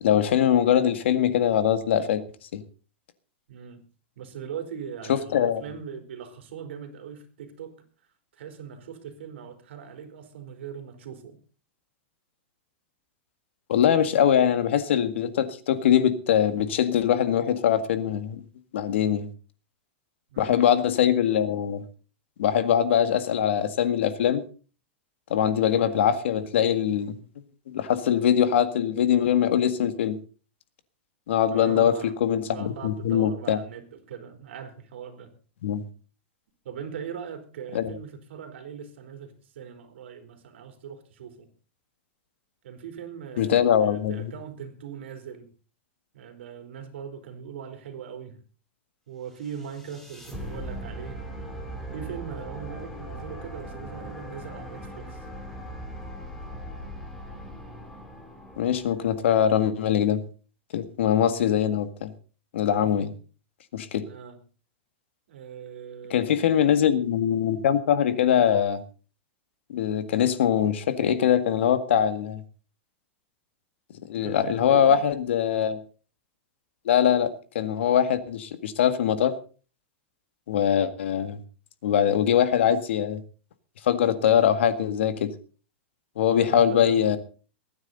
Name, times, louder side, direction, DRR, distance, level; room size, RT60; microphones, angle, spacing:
voice 1, 0.0-2.2 2.5-2.6 5.1-5.6 13.7-18.4 18.7-19.3 20.4-21.8 22.4-24.4 25.3-27.2 27.7-30.2 31.3-33.6 35.6-35.8 37.7-37.9 43.4-44.3 58.6-60.2 60.7-62.1 62.5-63.1 63.7-64.0 66.1-68.8 69.7-72.4 74.1-75.8 76.9-79.4 80.5-81.4 81.8-83.2 83.8-85.3 86.2-87.2, left 9 dB, 75° left, 11 dB, 1.8 m, -22 dB
voice 2, 3.5-3.8 4.2-7.8 8.3-11.4 20.3-20.7 31.5-32.1 32.5-35.3 36.6-41.5 42.6-45.5 46.1-48.4 49.1-51.3 51.9-55.3 62.8-63.1 64.0-64.4 65.3-66.4 74.2-75.0 86.3-87.1, right 7 dB, 75° right, 6 dB, 3.7 m, -40 dB
sound 1, 49.4-59.6, right 1 dB, 5° left, 2.5 m, -39 dB
23.0 x 9.6 x 4.1 m, 0.37 s
supercardioid pair, 170°, 6 cm